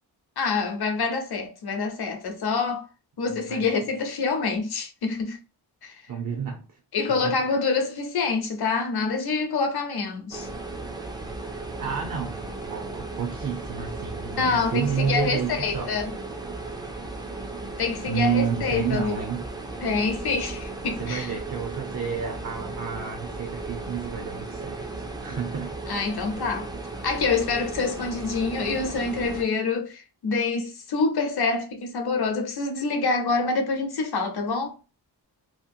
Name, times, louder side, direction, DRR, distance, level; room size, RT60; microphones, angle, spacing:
voice 1, 0.4-2.9 3.2-5.4 5.8-6.0 6.9-10.5 14.4-16.1 17.8-19.2 19.8-21.3 25.9-26.7 27.0-34.8, left 4 dB, 65° left, 0.8 m, -26 dB
voice 2, 6.1-6.8 7.1-7.4 11.8-15.9 18.1-19.4 21.0-24.9 25.2-25.7, right 7 dB, 55° right, 0.6 m, -30 dB
sound 1, 10.3-29.4, right 2 dB, 10° right, 0.3 m, -36 dB
2.9 x 2.3 x 2.5 m
wide cardioid pair, 145°, 41 cm